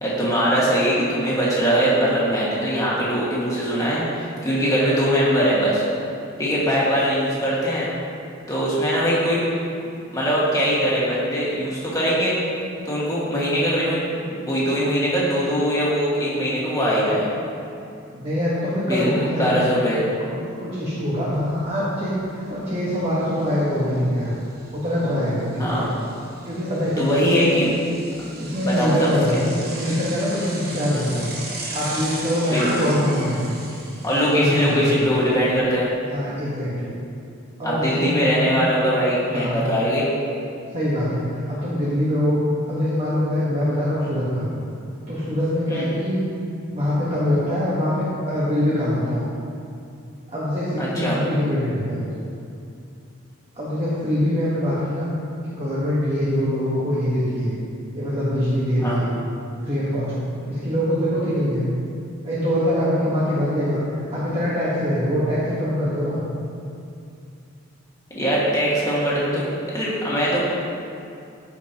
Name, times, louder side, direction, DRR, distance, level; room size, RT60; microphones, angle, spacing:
voice 1, 0.0-5.8 6.4-7.9 8.5-9.4 10.1-12.4 12.8-14.0 14.3-17.3 18.9-20.1 25.6-25.9 27.0-27.7 28.6-29.1 32.5-32.8 34.0-35.9 37.6-40.1 45.7-45.9 50.8-51.2 58.8-59.0 68.2-69.4 69.7-70.4, equal, 15° left, -7 dB, 1.8 m, -21 dB
voice 2, 18.1-19.7 20.6-24.3 24.7-25.9 26.4-27.6 28.4-31.3 31.7-33.5 34.3-35.1 36.1-36.9 37.6-38.7 39.3-39.6 40.7-41.2 41.5-42.4 42.7-44.5 45.1-46.2 46.7-49.2 50.3-52.2 53.5-55.1 55.4-57.5 57.9-59.0 59.6-60.1 60.4-61.7 62.2-63.8 64.1-66.2, equal, 30° right, -9 dB, 1.3 m, -23 dB
Bicycle, 21.3-21.4 21.8-35.6, right 2 dB, 45° right, 1.2 m, -37 dB
14.0 x 5.2 x 2.9 m, 2.5 s
head